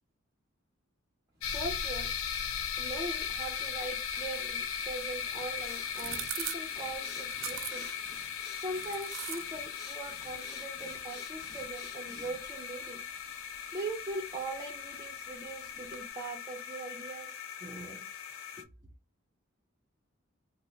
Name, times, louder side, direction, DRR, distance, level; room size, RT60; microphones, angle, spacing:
sound 1, 1.4-18.6, left 7 dB, 85° left, 0.4 m, -38 dB
voice 1, 1.5-2.1 2.8-7.9 8.6-13.0 13.7-18.1 18.6-18.7, right 2 dB, 20° right, 0.5 m, -41 dB
sound 2, 4.5-16.1, right 11 dB, 70° right, 0.4 m, -47 dB
sound 3, 5.5-12.6, left 4 dB, 50° left, 0.7 m, -50 dB
2.9 x 2.0 x 3.2 m
head